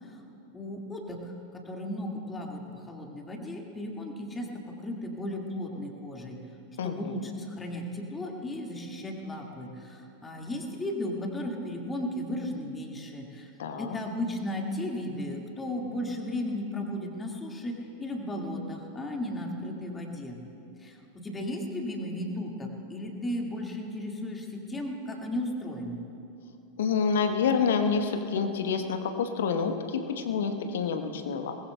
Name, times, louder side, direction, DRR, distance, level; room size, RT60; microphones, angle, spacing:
voice 1, 0.5-6.4 6.8-13.5 13.8-20.4 20.8-26.0, left 1 dB, 15° left, 1 dB, 2.0 m, -35 dB
voice 2, 6.8-7.3 13.6-14.0 26.8-31.6, left 6 dB, 60° left, 6 dB, 1.1 m, -28 dB
23.0 x 20.0 x 2.3 m, 2.7 s
figure-of-eight pair, 90°, 0 cm